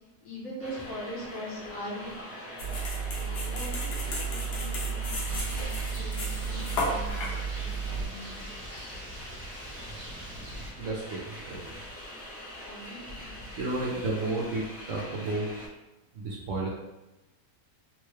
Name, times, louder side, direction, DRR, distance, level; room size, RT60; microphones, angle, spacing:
voice 1, 0.2-2.4 3.0-7.2 7.6-8.4 12.7-13.7, equal, 60° left, -5 dB, 1.2 m, -42 dB
sound 1, 0.6-15.7, equal, 20° right, 0.3 m, -43 dB
sound 2, 2.6-8.1, right 3 dB, 85° left, 1.3 m, -32 dB
Rain, 5.2-10.7, equal, 35° right, 0.7 m, -45 dB
voice 2, 10.8-11.7 13.2-15.5 16.1-16.7, right 2 dB, 65° right, -3 dB, 0.9 m, -32 dB
3.6 x 2.2 x 3.1 m, 1.0 s
omnidirectional pair, 1.7 m